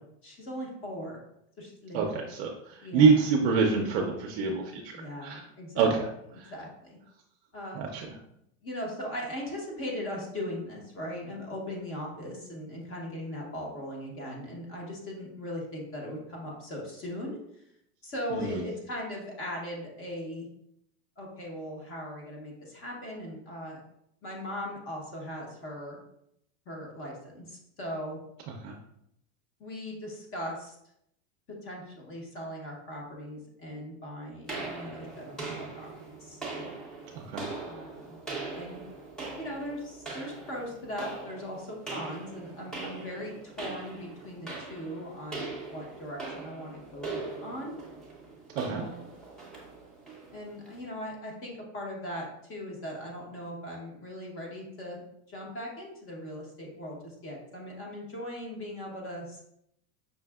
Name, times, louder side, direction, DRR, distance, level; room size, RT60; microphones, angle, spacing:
voice 1, 0.2-1.2 1.6-2.2 2.8-3.2 4.9-5.9 6.5-7.0 7.5-8.0 8.6-17.4 18.0-20.5 21.2-23.8 24.2-26.0 26.7-28.2 29.6-30.7 31.5-35.9 36.2-36.9 37.6-38.2 38.5-38.8 39.4-47.1 47.4-47.7 48.6-49.0 50.3-55.0 55.3-59.4, equal, 30° left, -1 dB, 0.8 m, -39 dB
voice 2, 1.9-4.9 5.2-5.4 5.8-6.0 6.4-6.5 7.8-8.1 18.3-18.6 28.6-28.7 37.1-37.4 48.6-48.8, right 5 dB, 45° right, 0 dB, 0.5 m, -26 dB
sound 1, 34.5-50.8, right 3 dB, ahead, 0.5 m, -41 dB
5.5 x 2.5 x 2.3 m, 0.76 s
supercardioid pair, 150°, 44 cm